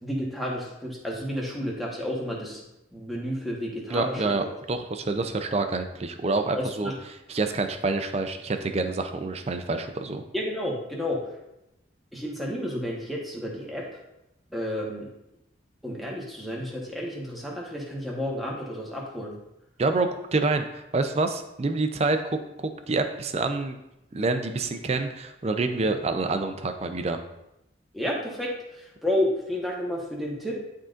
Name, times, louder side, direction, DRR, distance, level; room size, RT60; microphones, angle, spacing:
voice 1, 0.0-2.6 2.9-4.4 6.5-6.9 10.3-11.4 12.1-14.0 14.5-15.1 15.8-19.4 27.9-30.6, left 1 dB, ahead, -3 dB, 1.1 m, -31 dB
voice 2, 3.9-6.9 7.3-10.2 19.8-23.8 24.1-27.2, right 3 dB, 35° right, 7 dB, 0.4 m, -27 dB
11.0 x 3.8 x 2.5 m, 0.90 s
head